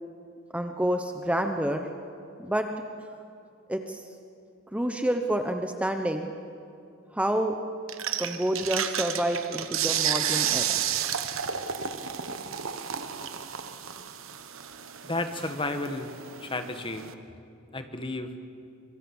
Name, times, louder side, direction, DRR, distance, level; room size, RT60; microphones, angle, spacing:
voice 1, 0.5-1.9 2.4-2.7 3.7-4.0 4.7-6.3 7.1-7.6 8.2-10.8, right 1 dB, 5° right, 5 dB, 0.9 m, -28 dB
sound 1, 7.9-17.1, right 9 dB, 65° right, 1.2 m, -32 dB
voice 2, 15.1-16.1 16.4-17.1 17.7-18.3, left 2 dB, 25° left, 8 dB, 1.4 m, -32 dB
25.0 x 23.5 x 7.2 m, 2.5 s
head